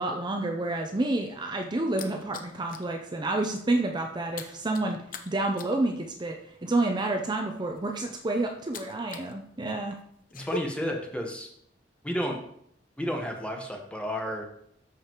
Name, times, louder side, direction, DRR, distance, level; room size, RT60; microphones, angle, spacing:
voice 1, 0.0-5.0 5.3-10.0, right 2 dB, 25° right, 3 dB, 0.6 m, -29 dB
sound 1, 1.1-2.9 3.3-3.5 3.8-9.3 9.6-10.6, left 3 dB, 50° left, 0.7 m, -43 dB
voice 2, 10.3-11.5 12.0-12.4 13.0-14.4, equal, 5° left, 1 dB, 1.2 m, -31 dB
13.0 x 5.0 x 3.0 m, 0.70 s
head